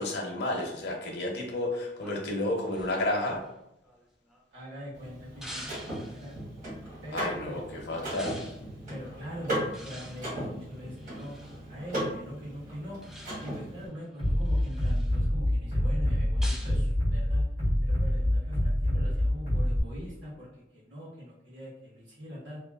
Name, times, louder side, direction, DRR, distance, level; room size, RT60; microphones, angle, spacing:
voice 1, 0.0-3.4 7.1-8.4, left 1 dB, 70° left, 0 dB, 0.5 m, -31 dB
sound 1, 2.0-4.7 5.4-6.4 8.1-8.7 9.7-11.6 13.0-13.7 14.2-15.2 16.4-16.8, equal, 5° right, 0.3 m, -46 dB
voice 2, 4.5-6.4 7.0-7.6 8.9-13.0 13.4-17.4 17.8-20.5 20.7-22.6, equal, 85° right, -9 dB, 1.3 m, -42 dB
Car / Mechanisms, 4.9-13.9, right 1 dB, 50° right, 1.0 m, -37 dB
Bass drum, 14.2-19.8, left 1 dB, 65° right, 1.4 m, -26 dB
2.9 x 2.1 x 2.3 m, 0.82 s
head